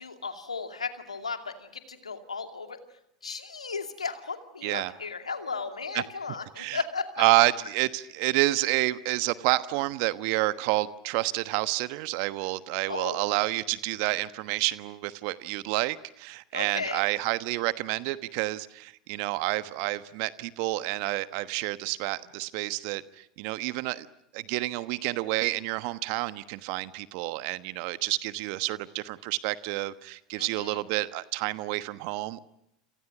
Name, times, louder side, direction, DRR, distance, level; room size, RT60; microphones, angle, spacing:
voice 1, 0.0-2.8 3.2-7.2 12.9-13.3 16.5-17.0 30.4-30.8, left 4 dB, 85° left, 7 dB, 2.4 m, -35 dB
voice 2, 4.6-4.9 5.9-6.0 6.6-6.8 7.2-24.1 24.3-32.4, right 19 dB, 55° right, 14 dB, 1.2 m, -29 dB
29.0 x 28.0 x 6.0 m, 0.81 s
figure-of-eight pair, 85°, 3 cm